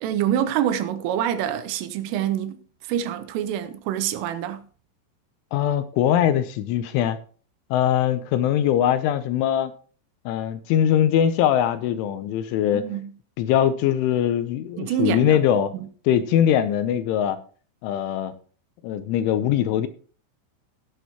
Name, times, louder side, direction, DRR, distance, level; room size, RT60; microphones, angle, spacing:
voice 1, 0.0-4.7 12.7-13.1 14.8-15.4 15.7-15.9, right 10 dB, 85° right, 3.4 m, -26 dB
voice 2, 5.5-7.2 7.7-9.7 10.3-12.9 13.4-15.7 16.1-17.4 17.8-18.3 18.8-19.9, left 10 dB, 80° left, 3.0 m, -21 dB
17.5 x 8.3 x 3.0 m
omnidirectional pair, 5.9 m